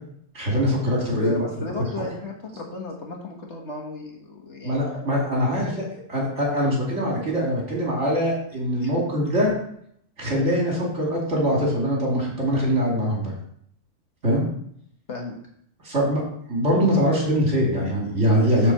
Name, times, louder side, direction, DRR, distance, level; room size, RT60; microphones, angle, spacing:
voice 1, 0.3-1.5 4.6-9.5 10.2-13.3 14.2-14.4 15.8-16.2 16.5-18.7, equal, 55° right, -3 dB, 3.0 m, -23 dB
voice 2, 0.9-5.2 8.8-8.9 15.1-15.4, left 3 dB, 55° left, 0 dB, 1.7 m, -35 dB
7.3 x 4.3 x 6.8 m, 0.69 s
omnidirectional pair, 1.4 m